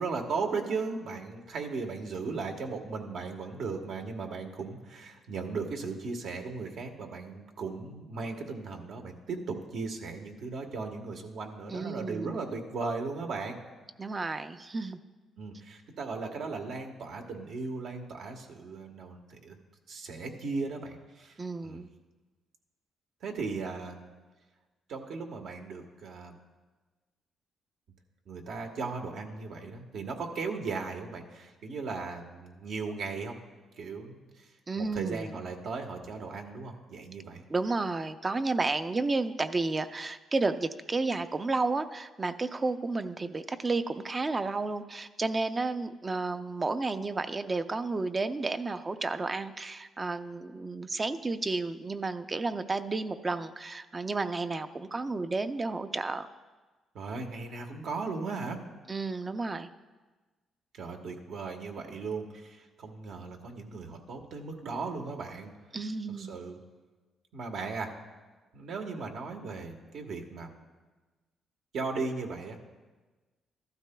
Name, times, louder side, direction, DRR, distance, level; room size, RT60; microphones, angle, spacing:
voice 1, 0.0-13.6 15.4-19.6 19.9-21.8 23.2-24.1 24.9-26.4 28.3-33.4 33.8-34.5 34.8-37.4 56.9-58.6 60.7-65.5 66.2-66.6 67.3-67.9 68.5-70.5 71.7-72.6, right 4 dB, 70° right, 3 dB, 1.3 m, -37 dB
voice 2, 11.7-12.4 14.0-15.0 21.4-21.9 34.7-35.3 37.5-56.3 58.9-59.7 65.7-66.3, right 3 dB, 30° right, 10 dB, 0.5 m, -32 dB
14.5 x 12.5 x 2.3 m, 1.3 s
cardioid pair, 90°, 0 cm